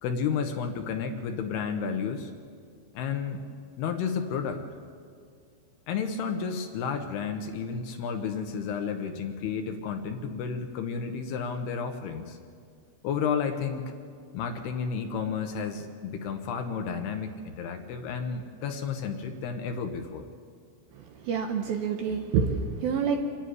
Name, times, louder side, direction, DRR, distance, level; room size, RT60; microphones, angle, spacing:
voice 1, 0.0-2.3 2.9-3.4 3.8-4.6 5.9-12.4 13.0-14.0 14.3-20.3, left 6 dB, 75° left, 6 dB, 2.7 m, -32 dB
voice 2, 21.2-23.2, right 6 dB, 75° right, 4 dB, 2.4 m, -27 dB
26.5 x 10.5 x 9.7 m, 2.2 s
omnidirectional pair, 5.2 m